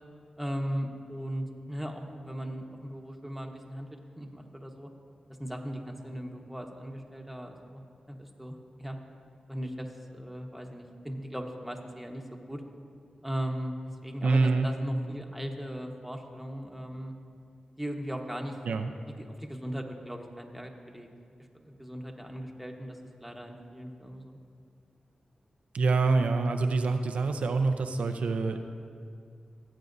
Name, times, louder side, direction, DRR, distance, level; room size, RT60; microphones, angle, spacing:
voice 1, 0.4-3.9 4.2-4.9 5.4-7.8 8.1-9.0 9.5-12.2 12.5-12.6 13.2-13.8 14.0-17.1 17.8-18.6 19.0-21.1 21.6-24.4, equal, 5° right, 2 dB, 1.2 m, -38 dB
voice 2, 14.2-14.7 18.6-18.9 25.7-28.6, right 3 dB, 80° right, 6 dB, 0.5 m, -26 dB
17.0 x 8.3 x 2.7 m, 2.2 s
cardioid pair, 50°, 2 cm